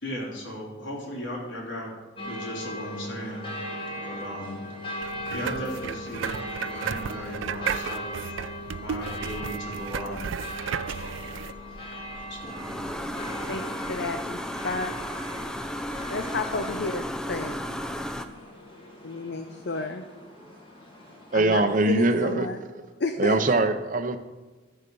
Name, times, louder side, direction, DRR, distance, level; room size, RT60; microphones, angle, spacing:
voice 1, 0.0-1.9 2.2-3.5 4.0-4.6 5.3-8.2 8.7-10.3 11.0-11.1 12.3-12.5, equal, 75° left, -2 dB, 3.0 m, -36 dB
sound 1, 2.2-21.6, left 1 dB, 25° left, 2.0 m, -39 dB
sound 2, 5.0-11.5, right 7 dB, 75° right, 0.4 m, -34 dB
sound 3, 8.8-18.2, equal, 5° left, 0.5 m, -36 dB
voice 2, 13.5-14.9 16.1-17.7 19.0-20.1 21.3-22.6 23.0-23.4, left 3 dB, 55° left, 7 dB, 0.6 m, -31 dB
voice 3, 21.3-22.5 23.2-24.2, right 2 dB, 45° right, 9 dB, 0.7 m, -22 dB
13.0 x 6.8 x 5.3 m, 1.2 s
head